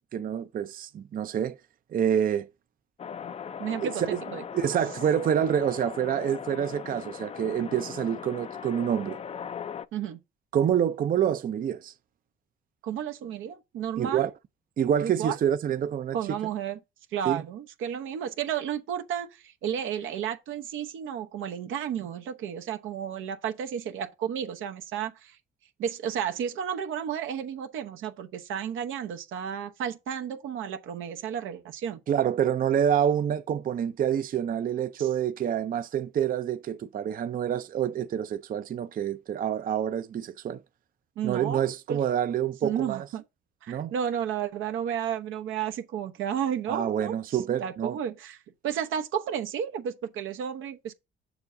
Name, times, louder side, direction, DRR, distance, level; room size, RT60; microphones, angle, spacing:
voice 1, 0.1-1.6 1.9-2.5 3.8-4.2 4.5-9.2 10.5-11.9 14.0-14.3 14.8-16.2 17.2-17.4 32.1-40.6 41.2-43.0 43.7-43.9 46.7-48.0, right 9 dB, 45° right, 0.5 m, -27 dB
sound 1, 3.0-9.9, left 7 dB, 30° left, 0.4 m, -39 dB
voice 2, 3.6-4.4 9.9-10.2 12.8-14.3 15.0-15.4 16.1-16.8 17.1-25.4 25.8-32.0 35.0-35.1 41.2-42.0 42.6-43.2 43.6-48.4 48.6-50.9, right 8 dB, 85° right, 0.9 m, -32 dB
7.0 x 6.8 x 2.6 m
cardioid pair, 90°, 20 cm